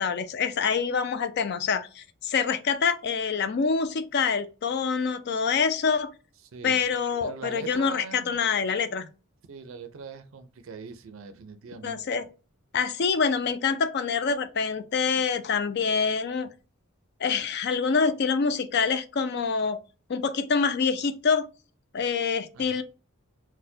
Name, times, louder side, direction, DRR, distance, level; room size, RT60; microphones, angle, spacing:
voice 1, 0.0-6.1 6.6-9.1 11.8-12.2 12.7-16.5 17.2-19.8 20.1-21.5 21.9-22.8, left 5 dB, 50° left, 0.4 m, -26 dB
voice 2, 6.5-6.8 7.2-8.4 9.5-12.2 22.5-22.8, right 5 dB, 65° right, 0.4 m, -41 dB
4.2 x 2.1 x 2.6 m
head